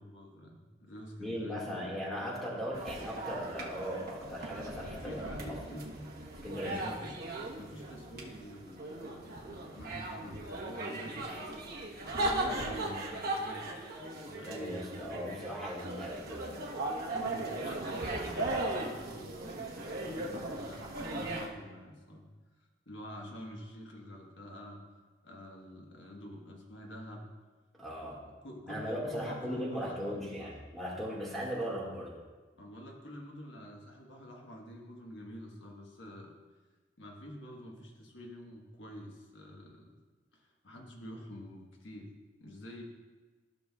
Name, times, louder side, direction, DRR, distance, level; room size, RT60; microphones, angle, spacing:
voice 1, 0.0-1.7 5.0-5.9 6.7-7.1 7.6-11.5 12.0-15.6 17.1-22.3 22.6-24.8 25.2-27.3 28.4-30.5 32.5-36.3 37.0-39.9 40.3-42.1 42.4-42.8, equal, 70° left, 0 dB, 1.4 m, -48 dB
voice 2, 1.2-5.6 6.4-6.9 14.5-16.5 27.8-28.2 28.7-32.2, equal, ahead, -4 dB, 1.9 m, -38 dB
sound 1, 2.7-21.5, right 2 dB, 55° right, 1.2 m, -38 dB
14.5 x 6.2 x 2.4 m, 1.3 s
head